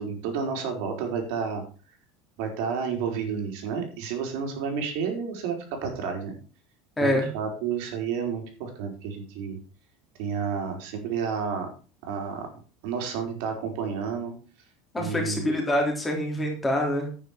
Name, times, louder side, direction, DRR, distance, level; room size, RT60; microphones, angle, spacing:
voice 1, 0.0-1.6 2.4-6.3 7.0-9.6 10.2-11.7 12.0-12.5 12.8-14.3 15.0-15.5, right 6 dB, 55° right, 3 dB, 4.2 m, -30 dB
voice 2, 7.0-7.3 14.9-17.1, left 1 dB, 5° left, 0 dB, 3.3 m, -25 dB
10.5 x 9.2 x 5.1 m, 0.36 s
cardioid pair, 180°, 0 cm